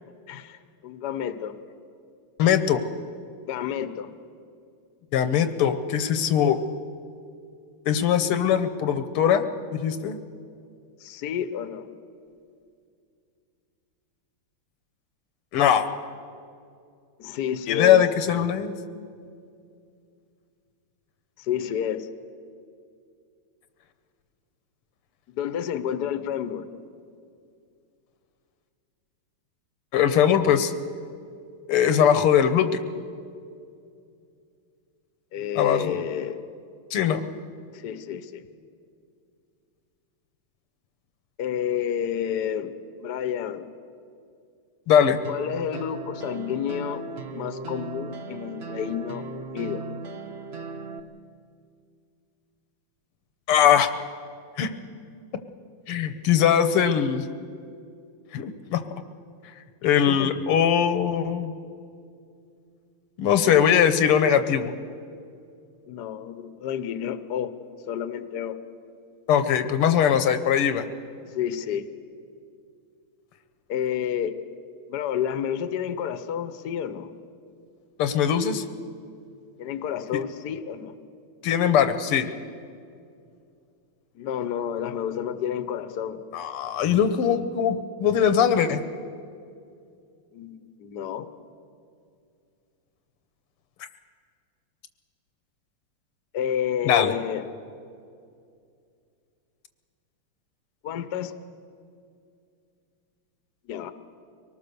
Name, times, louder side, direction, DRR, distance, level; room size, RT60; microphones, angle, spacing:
voice 1, 0.3-1.5 3.5-4.1 11.0-11.9 17.2-18.0 21.4-22.1 25.3-26.7 35.3-36.4 37.7-38.4 41.4-43.7 45.3-47.0 47.3-49.9 60.0-60.3 65.9-67.5 67.9-68.6 71.3-71.9 73.7-74.3 74.9-77.1 79.6-80.9 84.1-86.2 90.3-91.3 96.3-97.5 100.8-101.3 103.7-103.9, left 9 dB, 60° left, 11 dB, 1.2 m, -30 dB
voice 2, 2.4-2.8 5.1-6.6 7.9-9.5 9.7-10.2 15.5-15.9 17.7-18.7 29.9-30.7 31.7-32.8 35.6-36.0 36.9-37.3 44.9-45.2 53.5-53.9 54.6-54.7 55.9-57.3 58.3-58.8 59.8-61.5 63.2-64.7 69.3-70.8 78.0-78.6 81.4-82.3 86.3-88.8 96.8-97.1, left 8 dB, 85° left, 10 dB, 1.9 m, -21 dB
sound 1, 45.2-51.0, right 4 dB, 45° right, 0.8 m, -37 dB
23.5 x 19.0 x 6.8 m, 2.4 s
omnidirectional pair, 2.4 m